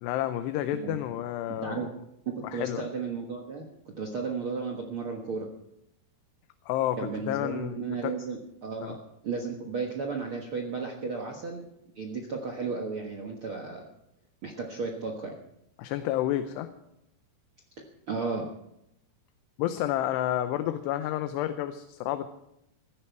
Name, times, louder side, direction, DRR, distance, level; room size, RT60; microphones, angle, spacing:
voice 1, 0.0-1.9 2.5-2.9 6.7-8.1 8.8-9.0 15.8-16.7 19.6-22.3, left 12 dB, 80° left, 9 dB, 2.8 m, -30 dB
voice 2, 1.6-1.9 2.2-3.7 4.0-5.5 7.0-9.0 9.2-11.6 11.9-13.8 14.4-15.4 18.1-18.5, right 4 dB, 70° right, 2 dB, 1.2 m, -34 dB
16.0 x 15.5 x 4.6 m, 0.82 s
omnidirectional pair, 4.9 m